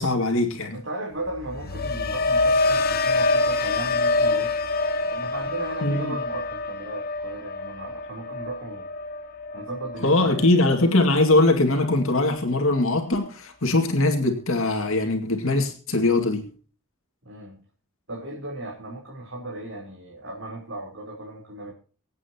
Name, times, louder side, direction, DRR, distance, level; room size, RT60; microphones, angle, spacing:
voice 1, 0.0-0.8 5.8-6.2 10.0-16.4, left 2 dB, 65° left, 3 dB, 2.2 m, -21 dB
voice 2, 0.7-4.5 5.1-8.9 9.5-10.6 17.2-17.6 18.1-21.7, right 1 dB, 65° right, -3 dB, 3.7 m, -36 dB
sound 1, 1.3-11.3 11.7-12.1, left 3 dB, 45° left, 1.3 m, -26 dB
25.5 x 8.8 x 2.9 m, 0.38 s
head